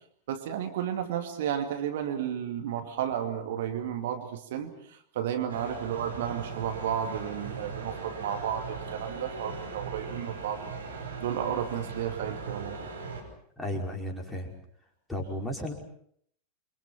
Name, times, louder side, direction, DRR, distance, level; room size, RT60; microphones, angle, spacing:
voice 1, 0.3-10.8 11.2-12.8, right 9 dB, 55° right, 5 dB, 2.4 m, -33 dB
sound 1, 5.5-13.2, right 4 dB, 75° right, 5.9 m, -39 dB
voice 2, 13.6-14.5 15.1-15.7, left 1 dB, 5° left, 0 dB, 5.4 m, -34 dB
29.0 x 24.5 x 5.8 m, 0.65 s
figure-of-eight pair, 90°, 0 cm